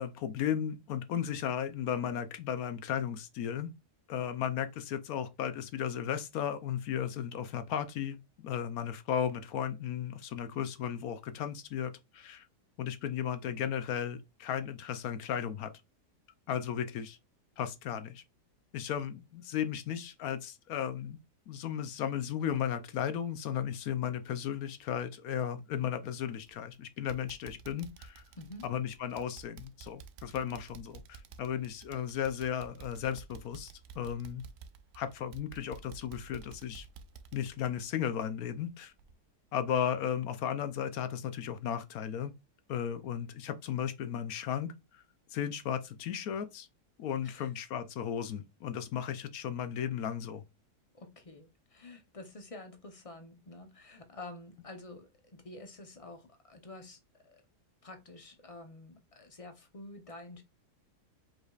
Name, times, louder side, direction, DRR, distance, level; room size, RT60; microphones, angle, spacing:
voice 1, 0.0-3.7 4.1-12.5 12.8-15.7 16.5-17.2 17.6-18.2 18.7-21.2 21.5-28.2 28.6-33.7 34.0-34.4 34.9-36.9 37.3-38.9 39.5-42.3 42.7-45.0 45.3-46.7 47.0-50.4, left 9 dB, 70° left, 1.0 m, -35 dB
sound 1, 26.4-26.7 27.1-38.7 39.0-39.1 39.6-39.7, right 6 dB, 80° right, 0.5 m, -52 dB
voice 2, 28.3-28.7 47.2-47.5 50.9-57.4 57.8-60.4, left 2 dB, 35° left, 0.6 m, -49 dB
4.9 x 4.0 x 2.4 m
omnidirectional pair, 1.8 m